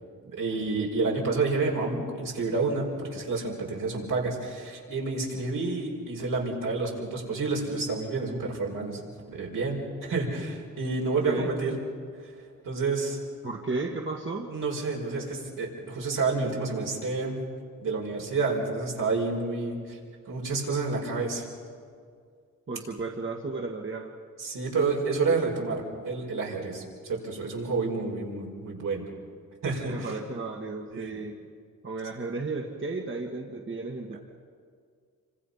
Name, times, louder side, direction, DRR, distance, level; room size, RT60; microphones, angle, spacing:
voice 1, 0.3-9.0 9.3-11.8 12.6-13.2 14.5-17.4 17.8-20.0 20.3-21.5 24.4-29.1 29.6-30.2 30.9-31.2 34.1-34.2, right 3 dB, 75° right, -2 dB, 5.6 m, -29 dB
voice 2, 11.2-11.5 13.4-14.5 22.7-24.1 29.9-31.3 31.8-34.2, right 3 dB, 35° right, 1 dB, 2.0 m, -34 dB
27.5 x 25.0 x 5.8 m, 2.1 s
cardioid pair, 70°, 32 cm